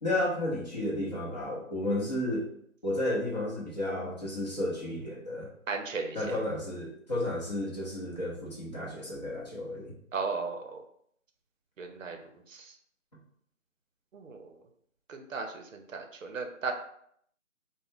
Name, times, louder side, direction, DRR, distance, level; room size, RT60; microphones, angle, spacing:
voice 1, 0.0-2.5 2.8-5.5 6.1-9.9, left 1 dB, 30° left, -5 dB, 0.8 m, -32 dB
voice 2, 5.7-6.2 10.1-10.8 11.8-12.2 12.5-12.7 14.1-14.5 15.1-16.7, right 4 dB, 75° right, 4 dB, 0.6 m, -36 dB
2.4 x 2.1 x 3.5 m, 0.68 s
figure-of-eight pair, 165°, 40 cm